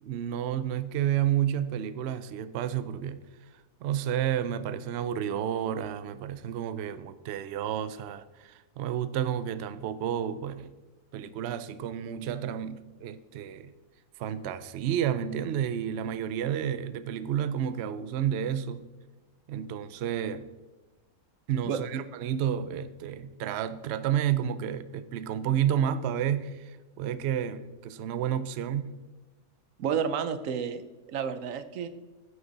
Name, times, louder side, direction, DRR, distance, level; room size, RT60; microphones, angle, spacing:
voice 1, 0.0-3.3 3.8-10.7 11.1-13.7 14.2-18.9 19.5-20.5 21.5-28.9, right 9 dB, 90° right, 13 dB, 0.5 m, -31 dB
voice 2, 29.8-30.8 31.1-31.9, right 7 dB, 65° right, 12 dB, 0.9 m, -30 dB
9.9 x 8.1 x 4.0 m, 1.2 s
omnidirectional pair, 1.7 m